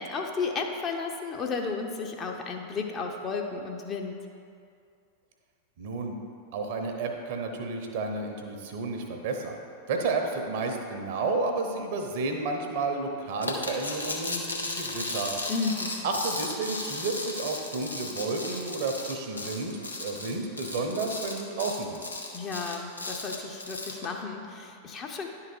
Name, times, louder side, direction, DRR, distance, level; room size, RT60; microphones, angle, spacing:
voice 1, 0.0-4.2 15.5-16.0 22.3-25.3, left 4 dB, 25° left, 2 dB, 0.7 m, -33 dB
voice 2, 5.8-6.2 6.5-9.6 9.9-15.3 16.0-22.1, right 3 dB, 50° right, 4 dB, 0.8 m, -31 dB
sound 1, 13.4-24.1, left 2 dB, 80° left, 0.9 m, -35 dB
10.5 x 3.8 x 4.6 m, 2.4 s
figure-of-eight pair, 90°, 0 cm